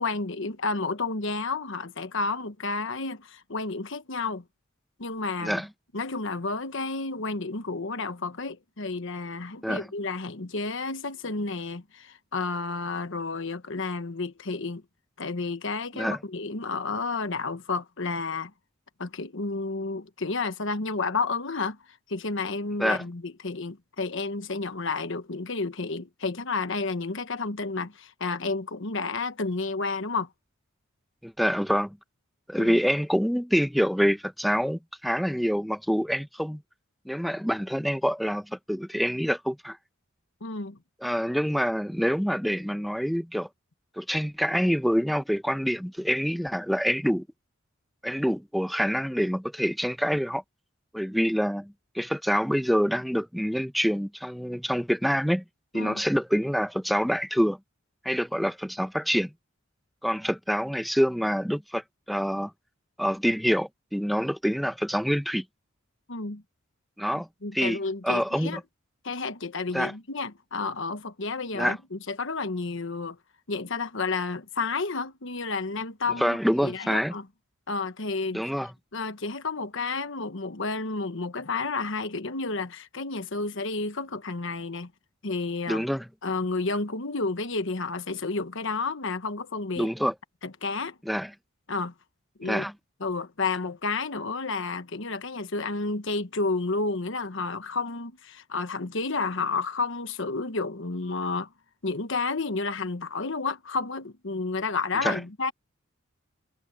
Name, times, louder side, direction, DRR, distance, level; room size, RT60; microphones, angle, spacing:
voice 1, 0.0-4.4 5.0-5.6 5.9-14.8 15.2-18.5 19.0-30.3 32.6-32.8 40.4-40.8 55.7-56.0 66.1-66.4 67.4-68.6 69.0-73.2 73.5-77.2 77.7-78.4 78.9-84.9 85.2-85.9 86.2-89.9 90.4-91.0 91.7-91.9 92.4-92.7 93.0-101.5 101.8-105.5, left 3 dB, 65° left, 1.2 m, -31 dB
voice 2, 31.2-32.0 32.5-36.6 37.0-39.8 41.0-43.5 44.0-47.3 48.0-50.4 50.9-55.4 55.7-57.6 58.0-59.3 60.0-62.5 63.0-65.4 67.0-67.3 67.5-67.8 68.0-68.6 69.7-69.9 71.5-71.8 76.2-77.1 78.3-78.7 85.7-86.0 89.8-90.1 91.1-91.3 92.4-92.7 105.0-105.2, equal, ahead, 1.1 m, -26 dB
head